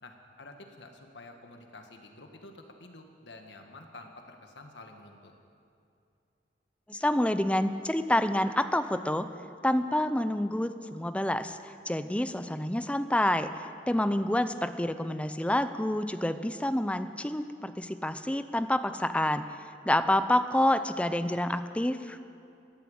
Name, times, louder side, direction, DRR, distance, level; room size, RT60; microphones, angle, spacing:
voice 1, 0.0-5.3 13.8-14.1, left 2 dB, 85° left, 4 dB, 1.6 m, -49 dB
voice 2, 6.9-9.3 9.6-19.4 19.9-22.2, left 1 dB, 5° left, 11 dB, 0.5 m, -28 dB
14.5 x 11.0 x 8.7 m, 2.6 s
head